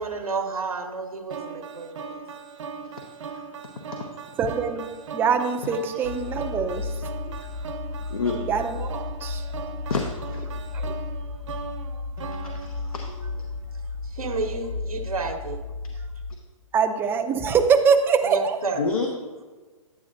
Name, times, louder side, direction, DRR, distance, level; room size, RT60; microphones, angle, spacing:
voice 1, 0.0-2.2 11.9-12.0 14.0-15.6 18.2-18.9, right 4 dB, 90° right, 4 dB, 1.0 m, -30 dB
sound 1, 1.3-13.5, right 6 dB, 60° right, 0.8 m, -39 dB
voice 2, 4.4-7.0 8.3-9.6 10.7-10.9 16.7-18.4, right 6 dB, 10° right, 6 dB, 0.4 m, -24 dB
sound 2, 6.0-16.3, left 3 dB, 50° left, 1.6 m, -34 dB
voice 3, 9.9-10.4 12.4-13.5 18.8-19.1, left 5 dB, 80° left, 2 dB, 1.0 m, -30 dB
9.7 x 9.1 x 2.6 m, 1.3 s
hypercardioid pair, 135°, 18 cm